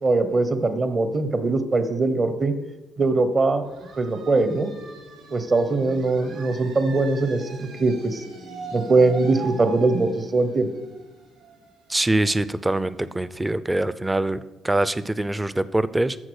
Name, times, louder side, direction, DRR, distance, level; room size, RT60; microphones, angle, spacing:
voice 1, 0.0-2.5 3.0-3.7 4.0-4.7 5.3-8.2 8.7-10.7, right 3 dB, 40° right, 9 dB, 1.0 m, -21 dB
sound 1, 3.6-13.1, right 4 dB, 80° right, 3.4 m, -41 dB
voice 2, 11.9-16.2, right 1 dB, 15° right, 15 dB, 0.5 m, -24 dB
13.5 x 4.8 x 6.4 m, 1.1 s
cardioid pair, 85°, 0 cm